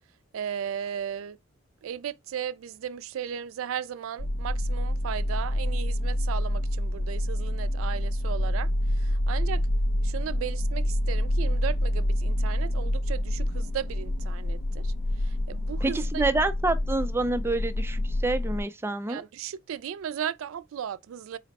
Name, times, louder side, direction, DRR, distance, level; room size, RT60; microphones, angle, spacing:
voice 1, 0.3-1.4 1.8-8.7 9.0-9.6 10.0-14.9 15.2-16.2 19.1-21.4, right 8 dB, 90° right, 0.3 m, -36 dB
sound 1, 4.2-18.6, left 1 dB, 75° left, 0.6 m, -27 dB
voice 2, 15.8-19.2, right 2 dB, 10° right, 0.3 m, -27 dB
4.1 x 2.1 x 4.0 m
head